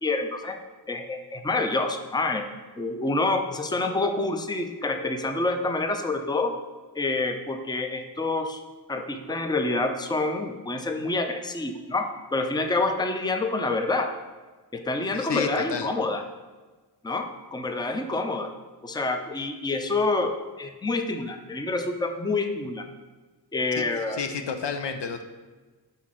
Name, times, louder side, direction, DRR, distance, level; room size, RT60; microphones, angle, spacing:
voice 1, 0.0-0.6 0.9-2.5 2.8-6.5 7.0-8.6 8.9-14.1 14.7-16.2 17.0-18.5 18.8-22.8 23.5-24.2, left 2 dB, 10° left, 5 dB, 0.5 m, -27 dB
voice 2, 15.1-15.9 23.7-25.2, left 6 dB, 85° left, 6 dB, 0.8 m, -31 dB
5.7 x 4.2 x 6.2 m, 1.3 s
wide cardioid pair, 115°, 42 cm